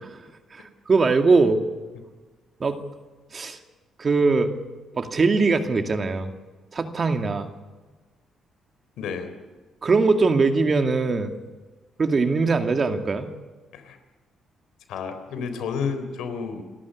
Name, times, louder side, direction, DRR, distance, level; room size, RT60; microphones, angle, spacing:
voice 1, 0.5-1.6 2.6-2.8 3.3-3.6 4.0-4.5 4.9-6.3 6.7-7.5 9.8-11.3 12.0-13.3, right 4 dB, 40° right, 6 dB, 2.3 m, -21 dB
voice 2, 9.0-9.3 13.7-14.0 14.9-16.6, left 6 dB, 85° left, 8 dB, 3.6 m, -31 dB
28.5 x 13.0 x 8.5 m, 1.3 s
cardioid pair, 90°, 0 cm